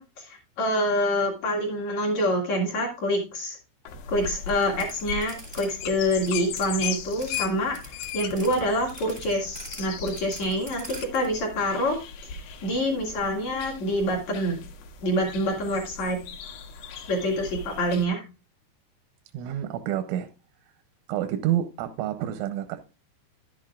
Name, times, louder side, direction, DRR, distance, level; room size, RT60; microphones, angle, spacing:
voice 1, 0.0-3.6 4.1-12.0 12.6-14.6 15.0-16.2 17.1-18.2, equal, 50° left, 2.3 m, -26 dB
sound 1, 3.9-18.1, left 4 dB, 70° left, 3.1 m, -40 dB
sound 2, 4.3-5.7 5.9-7.5 7.7-11.3, right 1 dB, 15° right, 0.7 m, -43 dB
sound 3, 5.1-5.5 5.7-6.0 6.3-9.7 10.1-10.2 11.0-11.1, left 16 dB, 85° left, 3.2 m, -35 dB
voice 2, 19.3-20.3 21.1-22.8, right 12 dB, 90° right, 3.2 m, -28 dB
11.0 x 8.7 x 2.4 m
omnidirectional pair, 5.5 m